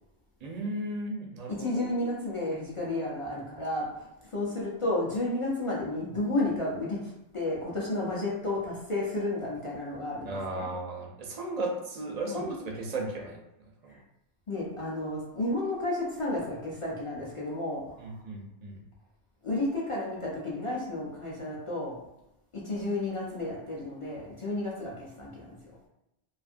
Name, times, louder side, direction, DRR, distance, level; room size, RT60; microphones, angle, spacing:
voice 1, 0.4-1.8 10.2-13.4 13.8-14.0 18.0-18.8, right 2 dB, 55° right, 0 dB, 0.5 m, -35 dB
voice 2, 1.5-10.7 12.3-12.5 13.9-14.0 14.5-18.0 19.4-22.0 22.5-25.6, left 2 dB, 40° left, -6 dB, 0.5 m, -32 dB
2.6 x 2.4 x 2.5 m, 0.88 s
omnidirectional pair, 1.1 m